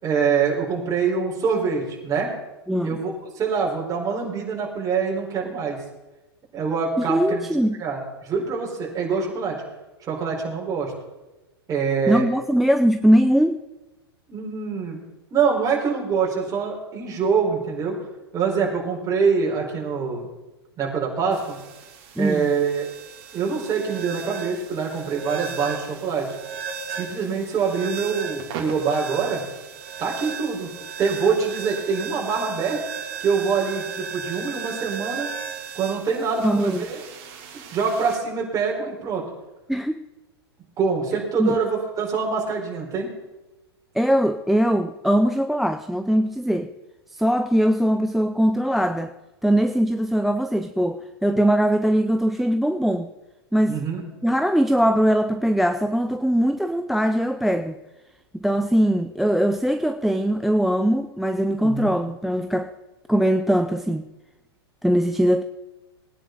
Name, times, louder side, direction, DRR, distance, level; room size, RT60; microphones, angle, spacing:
voice 1, 0.0-2.3 2.8-5.8 6.5-7.5 7.8-9.6 10.0-10.9 11.7-12.3 14.3-15.0 15.3-18.0 18.3-20.3 20.8-21.6 22.2-22.9 23.3-26.3 26.9-29.4 30.0-30.7 31.0-32.8 33.2-35.3 35.7-37.0 37.7-39.2 40.8-43.1 53.7-54.0 61.6-61.9, right 5 dB, 25° right, -2 dB, 4.8 m, -25 dB
voice 2, 2.7-3.0 7.0-7.8 12.1-13.6 22.2-22.5 36.4-36.8 39.7-40.0 41.4-41.6 43.9-46.7 47.1-49.1 49.4-53.1 53.5-53.8 54.2-57.8 58.3-62.7 63.1-64.1 64.8-65.4, equal, ahead, 10 dB, 0.5 m, -21 dB
sound 1, 21.3-38.2, right 6 dB, 45° right, 3.0 m, -36 dB
19.5 x 10.0 x 4.1 m, 1.1 s
hypercardioid pair, 110°, 14 cm